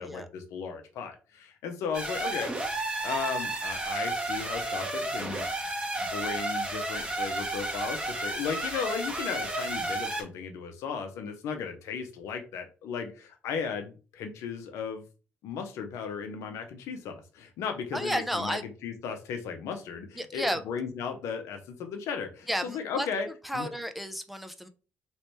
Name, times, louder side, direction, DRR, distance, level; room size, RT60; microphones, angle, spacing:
voice 1, 0.0-2.5 3.0-5.5 6.0-15.0 15.4-23.3 23.5-23.7, left 6 dB, 75° left, 6 dB, 0.7 m, -36 dB
sound 1, 1.9-10.2, right 2 dB, 20° right, 1.2 m, -32 dB
voice 2, 17.9-18.6 20.2-20.6 22.5-23.1 23.4-24.7, equal, ahead, 8 dB, 0.5 m, -32 dB
3.1 x 3.0 x 3.0 m, 0.35 s
supercardioid pair, 60°, 5 cm